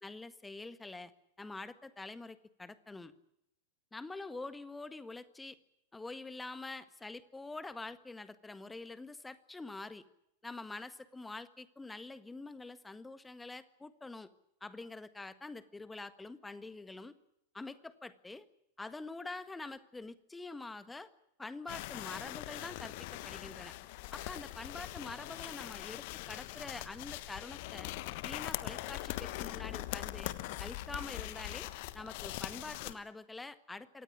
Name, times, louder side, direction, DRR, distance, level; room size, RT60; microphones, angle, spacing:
voice 1, 0.0-1.1 1.4-3.1 3.9-5.6 5.9-10.0 10.4-14.3 14.6-17.1 17.5-18.5 18.8-21.1 21.4-23.7 24.1-27.9 28.2-30.3 30.6-34.0, left 3 dB, 10° left, 13 dB, 1.7 m, -46 dB
sound 1, 21.7-32.9, left 17 dB, 50° left, 1.3 m, -42 dB
25.5 x 19.0 x 9.0 m, 0.79 s
figure-of-eight pair, 90°, 0 cm